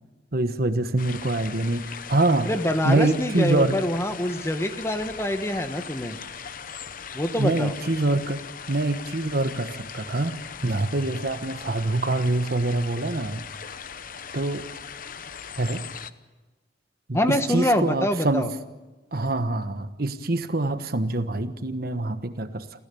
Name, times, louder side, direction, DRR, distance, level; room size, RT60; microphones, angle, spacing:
voice 1, 0.3-2.5 2.8-3.8 7.4-8.4 8.7-10.3 10.6-13.5 14.3-14.7 15.6-15.8 17.1-18.5 19.1-22.7, right 2 dB, 55° right, 9 dB, 1.3 m, -25 dB
sound 1, 1.0-16.1, left 7 dB, 50° left, 0.9 m, -39 dB
voice 2, 2.5-6.2 7.1-7.7 17.1-18.5, left 1 dB, 15° left, 8 dB, 1.2 m, -25 dB
28.5 x 15.5 x 7.0 m, 1.2 s
head